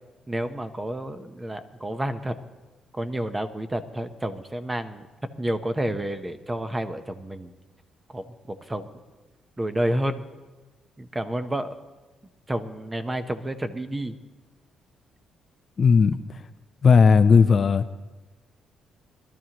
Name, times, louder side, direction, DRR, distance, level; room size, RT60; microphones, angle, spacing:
voice 1, 0.3-2.3 2.9-5.0 5.4-7.5 8.1-8.9 9.6-10.2 11.0-11.7 12.5-14.2, right 1 dB, 15° right, 9 dB, 0.9 m, -30 dB
voice 2, 15.8-16.2 16.8-17.8, left 5 dB, 45° left, 11 dB, 0.5 m, -16 dB
21.0 x 12.5 x 3.0 m, 1.2 s
cardioid pair, 90°, 0 cm